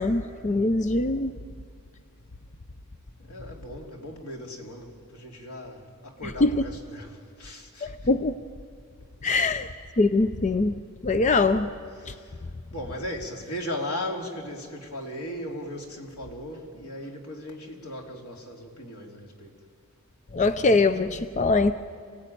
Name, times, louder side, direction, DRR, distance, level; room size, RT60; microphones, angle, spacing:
voice 1, 0.0-1.3 6.4-6.5 7.8-8.4 9.2-9.7 10.0-11.7 12.1-12.2 20.3-21.7, left 3 dB, 35° left, 11 dB, 0.5 m, -23 dB
voice 2, 3.2-7.9 9.2-9.4 12.0-12.3 12.7-19.5, left 1 dB, 90° left, 0 dB, 3.1 m, -37 dB
27.5 x 17.0 x 9.3 m, 2.3 s
head